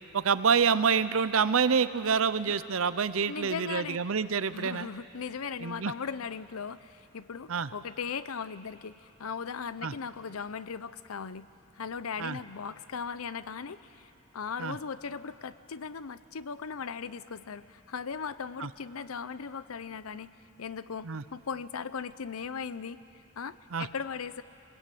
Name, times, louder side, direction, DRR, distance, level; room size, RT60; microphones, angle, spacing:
voice 1, 0.1-4.9 5.6-5.9 7.5-7.7 9.8-9.9 12.2-12.4 14.6-14.8 18.6-18.7 21.0-21.2 23.7-23.9, right 6 dB, 75° right, 14 dB, 0.7 m, -27 dB
voice 2, 3.3-4.0 4.5-11.5 11.7-20.3 20.6-24.4, left 6 dB, 90° left, 15 dB, 0.6 m, -38 dB
23.5 x 20.5 x 8.5 m, 2.9 s
head